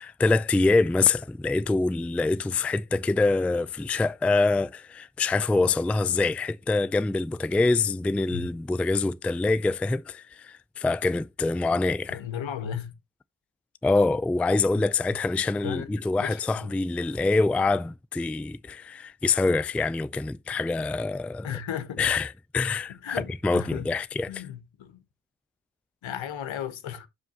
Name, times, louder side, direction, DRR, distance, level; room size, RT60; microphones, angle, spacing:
voice 1, 0.0-12.2 13.8-21.5 22.0-24.4, left 3 dB, 5° left, 0.3 m, -25 dB
voice 2, 12.1-13.0 15.6-16.7 21.4-22.1 22.9-23.9 24.3-25.0 26.0-27.1, left 9 dB, 70° left, 1.4 m, -35 dB
11.5 x 4.7 x 2.9 m
supercardioid pair, 45°, 48 cm